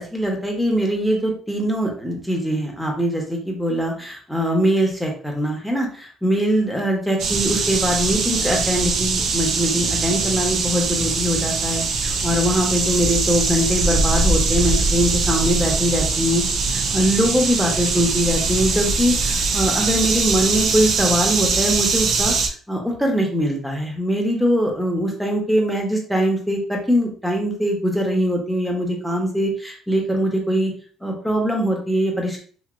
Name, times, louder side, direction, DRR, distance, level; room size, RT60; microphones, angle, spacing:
voice 1, 0.0-16.4 16.7-22.3 22.7-30.7 31.0-32.4, equal, ahead, 0 dB, 1.0 m, -22 dB
sound 1, 7.2-22.5, right 4 dB, 70° right, 0.5 m, -22 dB
3.0 x 2.8 x 2.5 m, 0.43 s
cardioid pair, 100°, 0 cm